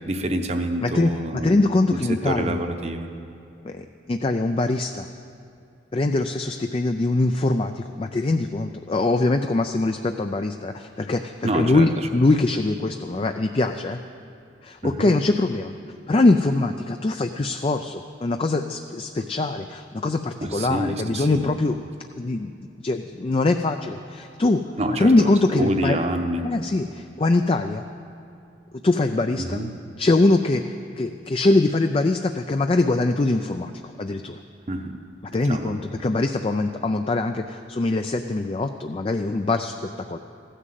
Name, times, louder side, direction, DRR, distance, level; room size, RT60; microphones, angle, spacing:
voice 1, 0.0-1.7 2.2-3.1 11.4-12.1 14.8-15.1 20.4-21.6 24.8-26.5 29.4-29.7 34.7-35.0 35.5-35.7, right 1 dB, 35° right, 6 dB, 0.9 m, -27 dB
voice 2, 0.8-2.6 3.6-5.1 5.9-14.0 14.6-15.7 16.1-21.8 22.2-22.5 22.8-24.6 25.0-26.0 26.4-27.8 28.8-29.6 30.0-33.7 34.0-34.4 35.3-40.2, left 2 dB, 30° left, 6 dB, 0.4 m, -23 dB
15.5 x 10.0 x 7.5 m, 2.6 s
head